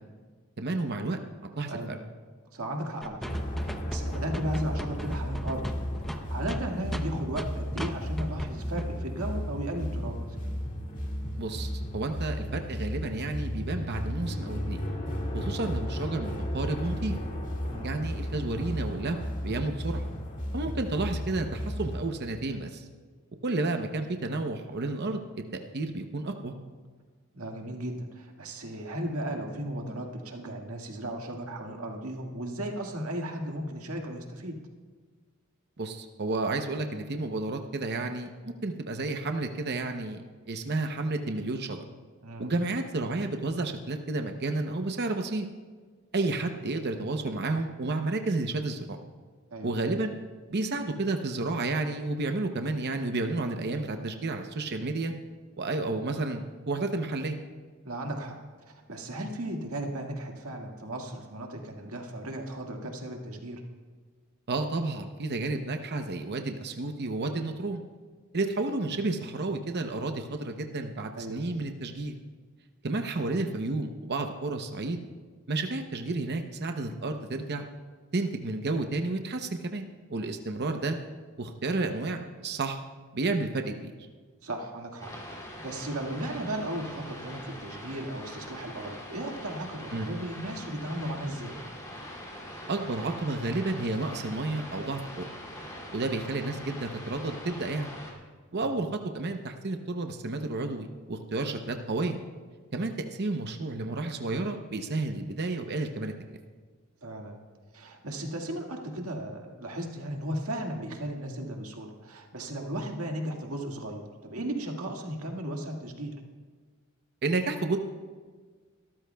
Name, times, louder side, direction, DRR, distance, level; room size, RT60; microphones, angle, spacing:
voice 1, 0.6-1.2 1.6-2.0 11.4-14.8 15.3-17.2 17.8-19.2 19.4-20.1 20.5-22.9 23.4-25.2 25.7-26.5 35.8-40.2 40.5-41.8 42.4-45.5 46.1-49.0 49.6-50.1 50.5-55.1 55.6-57.4 64.5-67.8 68.3-72.2 72.8-75.0 75.5-77.7 78.1-79.8 80.1-81.0 81.4-82.8 83.1-83.9 89.9-90.1 92.7-95.2 95.9-97.9 98.5-102.2 102.7-106.1 117.2-117.8, right 2 dB, 50° right, 5 dB, 0.8 m, -31 dB
voice 2, 1.7-2.0 2.5-3.3 3.6-5.8 6.1-10.3 17.7-17.9 27.3-34.6 42.2-42.5 49.5-49.7 57.8-58.4 58.7-63.6 71.2-71.4 84.4-85.1 85.6-91.6 98.6-98.7 107.0-107.4 107.7-116.2, right 1 dB, 80° right, 2 dB, 1.9 m, -35 dB
sound 1, 3.0-7.5 7.8-7.9 8.2-8.5 8.8-8.9, equal, ahead, 0.7 m, -37 dB
sound 2, 3.3-22.1, equal, 35° left, 2.0 m, -34 dB
sound 3, 85.0-98.1, equal, 15° left, 2.6 m, -43 dB
24.0 x 13.5 x 2.3 m, 1.5 s
head